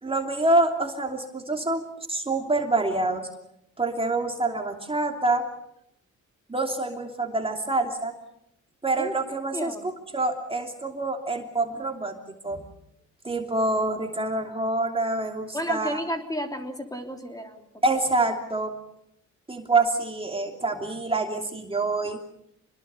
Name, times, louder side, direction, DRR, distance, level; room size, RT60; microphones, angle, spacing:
voice 1, 0.0-3.3 3.8-5.4 6.5-8.1 8.8-9.7 10.1-12.6 13.2-16.0 17.8-18.8 19.5-22.2, right 2 dB, 20° right, 3 dB, 3.0 m, -26 dB
voice 2, 9.5-9.9 15.5-17.7, equal, 10° left, 4 dB, 3.3 m, -32 dB
26.5 x 21.0 x 6.9 m, 0.77 s
cardioid pair, 90°, 30 cm